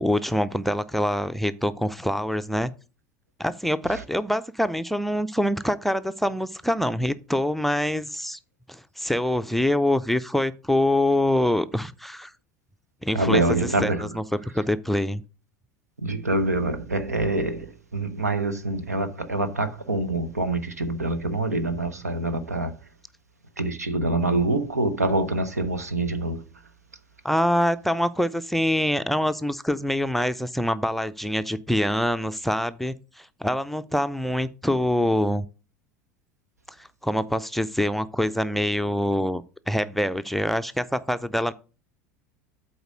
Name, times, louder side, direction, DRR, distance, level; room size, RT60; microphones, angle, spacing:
voice 1, 0.0-2.7 3.4-8.4 8.7-12.3 13.0-13.4 13.8-14.2 14.5-15.2 27.2-35.5 37.0-39.4 39.7-41.5, left 1 dB, ahead, 0.5 m, -25 dB
voice 2, 13.1-14.2 14.5-14.6 16.0-22.7 23.6-26.4, right 2 dB, 85° right, 0.8 m, -25 dB
8.0 x 4.4 x 6.3 m
figure-of-eight pair, 75°, 8 cm